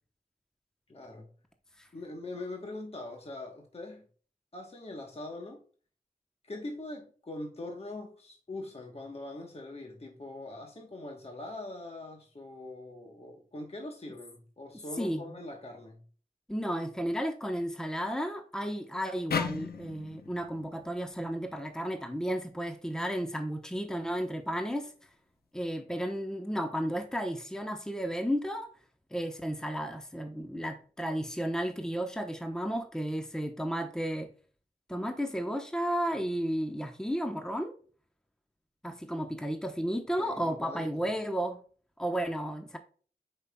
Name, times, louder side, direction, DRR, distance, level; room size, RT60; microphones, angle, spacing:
voice 1, 0.9-1.3 1.9-4.0 4.5-5.6 6.4-16.0 40.2-41.0, left 2 dB, 40° left, 1.2 m, -42 dB
voice 2, 15.0-15.3 16.5-24.9 25.5-28.7 29.1-34.3 34.9-37.7 38.8-41.6 42.0-42.8, equal, 5° left, 1.0 m, -33 dB
sound 1, 19.3-22.5, left 6 dB, 80° left, 0.7 m, -38 dB
8.0 x 5.5 x 2.3 m
cardioid pair, 50°, 16 cm